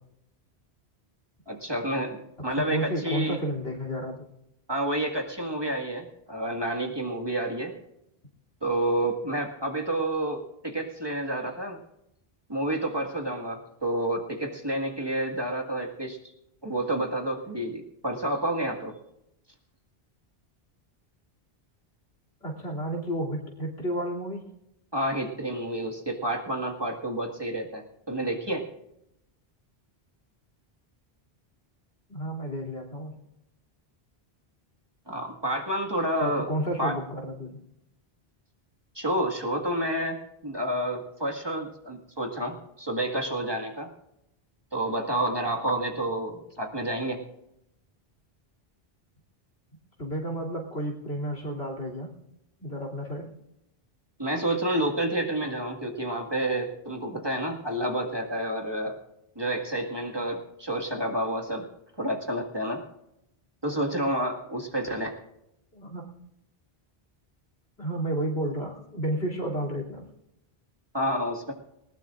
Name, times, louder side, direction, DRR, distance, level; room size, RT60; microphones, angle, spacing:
voice 1, 1.5-3.4 4.7-7.7 8.6-11.8 12.5-16.2 16.6-18.9 24.9-28.7 35.1-36.5 36.8-37.0 39.0-43.9 44.7-47.2 54.2-59.0 59.4-61.7 62.0-62.8 63.6-65.1 70.9-71.5, right 1 dB, 25° right, 1 dB, 1.9 m, -29 dB
voice 2, 2.5-4.3 22.4-24.4 32.1-33.1 36.2-37.6 50.0-52.1 52.6-53.3 65.7-66.0 67.8-70.0, right 1 dB, 85° left, 0 dB, 3.4 m, -31 dB
20.0 x 19.5 x 2.5 m, 0.83 s
omnidirectional pair, 1.0 m